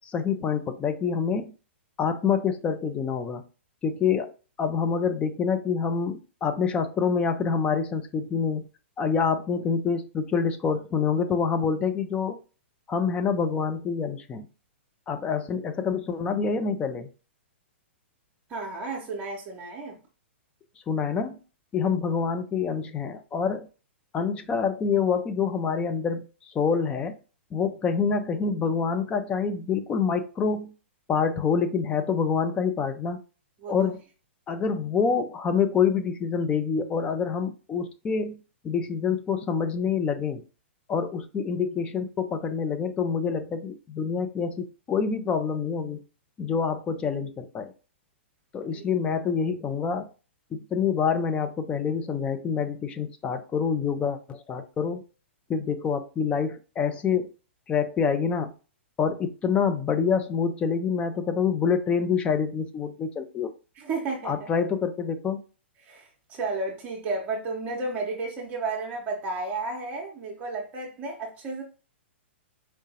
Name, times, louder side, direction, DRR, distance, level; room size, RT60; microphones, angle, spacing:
voice 1, 0.1-1.5 2.0-3.4 3.8-4.3 4.6-8.7 9.0-12.4 12.9-14.5 15.1-17.1 20.9-21.4 21.7-23.7 24.1-26.3 26.5-27.2 27.5-30.7 31.1-33.2 33.7-34.0 34.5-38.4 38.6-40.4 40.9-46.0 46.4-47.7 48.5-50.1 50.5-55.0 55.5-57.3 57.7-58.5 59.0-63.5 64.2-65.4, left 6 dB, 15° left, 0.5 m, -26 dB
voice 2, 18.5-20.0 33.6-33.9 48.7-48.8 63.7-64.5 65.8-71.6, right 3 dB, 25° right, 0.8 m, -32 dB
4.5 x 2.7 x 2.8 m
figure-of-eight pair, 110°, 7 cm